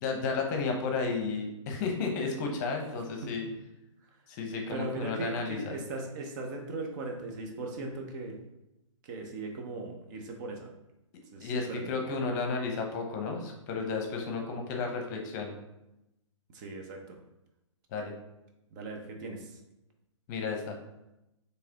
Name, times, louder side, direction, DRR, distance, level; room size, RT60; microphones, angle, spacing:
voice 1, 0.0-3.5 4.3-5.7 11.4-15.5 17.9-18.1 20.3-20.7, left 4 dB, 35° left, 2 dB, 0.8 m, -33 dB
voice 2, 4.7-8.4 9.1-10.7 11.3-12.0 16.5-17.2 18.7-19.5, right 2 dB, 40° right, 2 dB, 0.8 m, -38 dB
4.8 x 3.3 x 2.9 m, 0.91 s
figure-of-eight pair, 125°, 16 cm